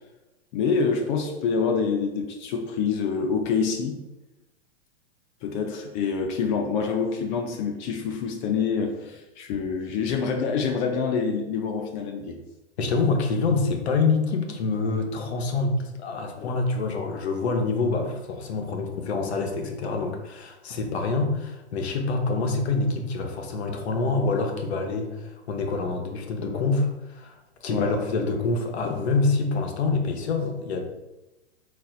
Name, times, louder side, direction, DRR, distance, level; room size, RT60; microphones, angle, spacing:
voice 1, 0.5-4.0 5.4-12.4 16.4-16.6 27.7-27.9 28.8-29.0, left 5 dB, 45° left, 3 dB, 0.6 m, -26 dB
voice 2, 12.8-27.3 27.6-30.8, left 3 dB, 70° left, 3 dB, 0.9 m, -26 dB
4.2 x 4.0 x 2.4 m, 1.0 s
hypercardioid pair, 105°, 34 cm